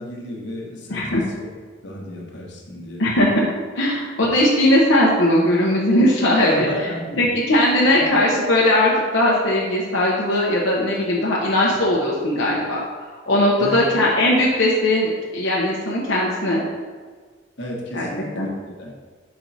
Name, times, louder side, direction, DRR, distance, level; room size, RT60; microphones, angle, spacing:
voice 1, 0.0-1.5 1.8-3.0 6.5-7.3 7.9-8.2 13.6-13.9 17.6-18.9, left 1 dB, 65° left, -2 dB, 1.3 m, -33 dB
voice 2, 0.9-1.2 3.0-3.5 3.7-6.9 7.2-12.8 13.1-16.6 17.9-18.1 18.3-18.5, left 1 dB, 85° left, -5 dB, 0.9 m, -19 dB
5.3 x 4.6 x 4.0 m, 1.5 s
head